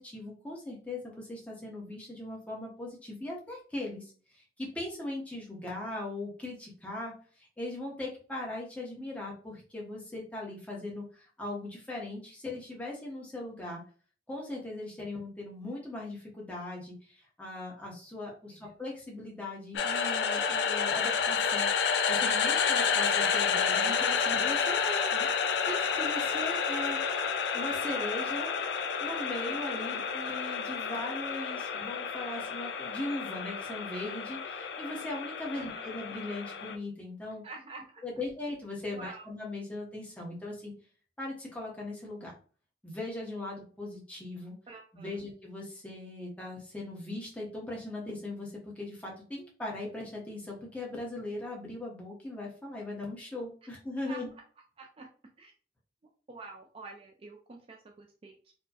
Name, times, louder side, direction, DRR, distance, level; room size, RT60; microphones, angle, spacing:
voice 1, 0.0-4.0 4.3-13.8 14.3-25.3 25.7-28.5 29.0-37.4 38.0-40.7 41.2-42.3 42.8-44.5 44.9-54.3, left 2 dB, 10° left, -3 dB, 0.8 m, -39 dB
sound 1, 19.7-36.7, left 6 dB, 70° left, 0.4 m, -30 dB
voice 2, 35.5-35.9 37.4-38.0 38.9-39.3 44.7-45.3 53.6-53.7 54.1-54.4 54.8-55.1 55.4-55.5 56.3-58.5, right 3 dB, 30° right, 1 dB, 0.4 m, -48 dB
4.4 x 2.1 x 2.8 m, 0.41 s
head